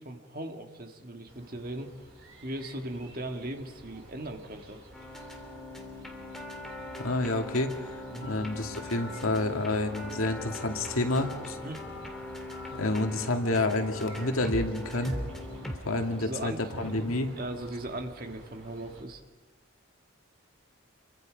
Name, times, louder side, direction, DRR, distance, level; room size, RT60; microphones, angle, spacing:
voice 1, 0.0-1.9 2.4-4.8 8.1-8.4 11.6-11.8 15.9-17.1 17.4-19.2, right 1 dB, 45° right, 4 dB, 1.9 m, -39 dB
sound 1, 1.3-19.0, right 1 dB, 75° right, 4.9 m, -49 dB
sound 2, 4.9-15.8, left 1 dB, ahead, 2.3 m, -40 dB
voice 2, 7.0-7.7 8.2-11.6 12.7-15.2 15.9-17.3, left 2 dB, 90° left, 4 dB, 2.2 m, -29 dB
Telephone, 8.2-8.5 8.9-9.2 9.6-9.9 10.4-10.6 11.1-11.3 11.8-12.1 12.5-12.8 13.2-13.5 13.9-14.2, left 4 dB, 40° left, 6.3 m, -47 dB
29.0 x 23.5 x 5.2 m, 1.3 s
head